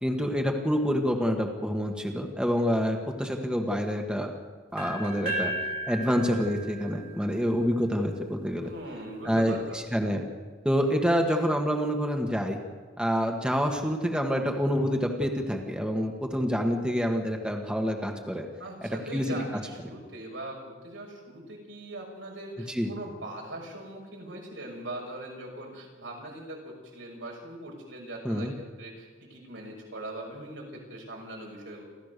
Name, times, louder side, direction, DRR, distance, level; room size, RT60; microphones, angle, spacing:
voice 1, 0.0-4.3 4.7-5.5 5.9-8.7 9.2-9.6 9.9-10.2 10.6-12.6 13.0-18.4 18.8-19.2 22.7-22.9 28.2-28.5, equal, 5° right, 2 dB, 1.7 m, -27 dB
sound 1, 4.8-8.7, right 1 dB, 50° right, 3.3 m, -36 dB
voice 2, 8.6-9.8 18.6-28.5 28.8-31.8, right 1 dB, 85° right, -1 dB, 6.3 m, -41 dB
28.5 x 13.0 x 6.8 m, 1.4 s
head